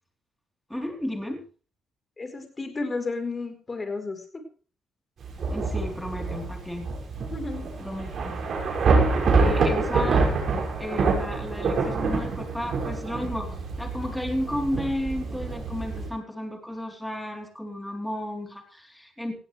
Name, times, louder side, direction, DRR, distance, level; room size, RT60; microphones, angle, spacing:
voice 1, 0.7-1.4 5.5-6.9 7.8-8.4 9.3-10.3 10.8-19.4, left 1 dB, 5° left, 2 dB, 3.9 m, -33 dB
voice 2, 2.2-4.4 7.3-7.6, left 3 dB, 30° left, 6 dB, 4.3 m, -32 dB
Thunder / Rain, 5.2-16.1, right 4 dB, 55° right, 6.4 m, -26 dB
18.0 x 16.0 x 3.5 m, 0.39 s
cardioid pair, 90°, 0 cm